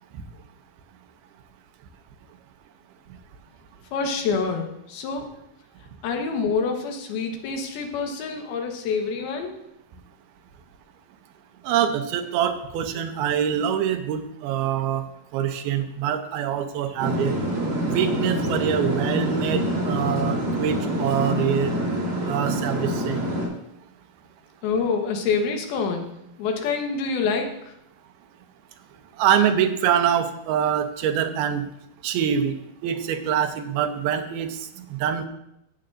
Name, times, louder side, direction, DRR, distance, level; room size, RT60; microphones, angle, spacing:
voice 1, 3.9-5.3 6.0-9.5 24.6-26.1 26.4-27.5, left 5 dB, 90° left, 3 dB, 3.1 m, -26 dB
voice 2, 11.6-15.0 15.3-17.4 17.8-21.7 22.3-23.2 29.2-31.6 32.0-32.5 32.8-35.3, right 9 dB, 85° right, 8 dB, 2.7 m, -24 dB
sound 1, 17.0-23.5, equal, 40° right, 2.8 m, -26 dB
16.0 x 7.6 x 2.5 m, 0.79 s
omnidirectional pair, 4.3 m